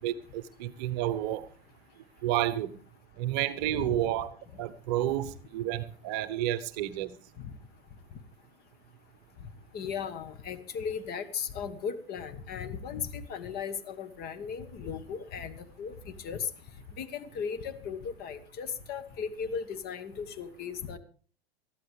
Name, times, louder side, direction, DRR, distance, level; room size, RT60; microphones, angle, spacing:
voice 1, 0.0-1.5 2.2-2.7 3.2-7.2, right 13 dB, 40° right, 14 dB, 0.9 m, -31 dB
voice 2, 9.7-16.4 17.0-21.0, left 6 dB, 30° left, 10 dB, 1.4 m, -37 dB
20.0 x 13.5 x 3.3 m, 0.40 s
figure-of-eight pair, 95°, 31 cm